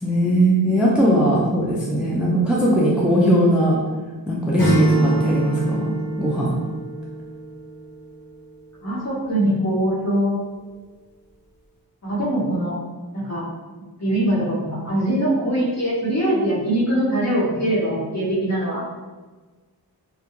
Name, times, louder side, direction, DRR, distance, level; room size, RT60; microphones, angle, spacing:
voice 1, 0.0-3.8 4.3-5.9 6.2-6.6, right 1 dB, 5° right, -5 dB, 0.4 m, -19 dB
Acoustic guitar / Strum, 4.6-7.7, right 1 dB, 85° left, 0.8 m, -23 dB
voice 2, 8.8-10.3 12.0-12.8 13.1-13.5 14.0-18.8, right 1 dB, 40° left, -7 dB, 0.9 m, -22 dB
2.2 x 2.1 x 2.9 m, 1.3 s
wide cardioid pair, 80°, 40 cm